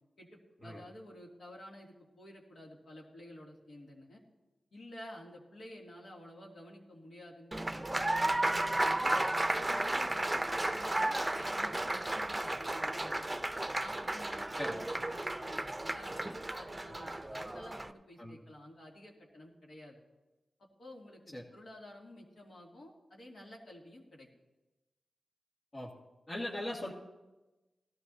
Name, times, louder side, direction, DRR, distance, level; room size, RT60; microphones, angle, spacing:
voice 1, 0.2-4.2 4.7-9.1 9.5-13.4 13.8-20.0 20.6-24.3, left 1 dB, 70° left, -2 dB, 2.7 m, -51 dB
Applause, 7.5-17.9, right 1 dB, 20° right, 0.7 m, -33 dB
voice 2, 26.3-26.9, left 1 dB, 50° left, -6 dB, 2.2 m, -39 dB
17.5 x 13.0 x 2.8 m, 1.1 s
cardioid pair, 40°, 0 cm